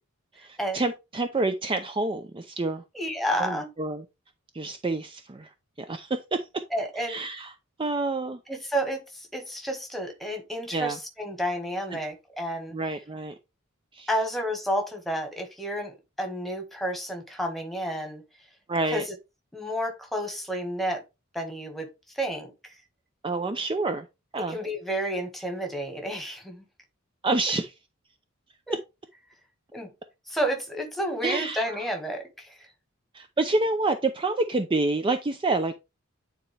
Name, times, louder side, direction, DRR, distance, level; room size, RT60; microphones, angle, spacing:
voice 1, 0.3-2.8 3.4-4.0 4.5-5.5 5.8-6.6 7.0-7.5 7.8-8.4 10.7-11.0 12.7-13.3 13.9-14.1 18.7-19.0 23.2-24.1 24.3-24.6 27.2-27.7 31.2-31.6 33.1-35.8, right 2 dB, 25° right, 0.5 m, -28 dB
voice 2, 2.9-3.7 6.7-7.2 8.5-12.8 14.1-18.2 18.9-19.1 19.5-21.0 21.3-22.8 24.4-26.6 28.7-28.8 29.7-29.9 30.3-32.7, equal, ahead, 1.6 m, -31 dB
9.3 x 4.3 x 3.3 m
head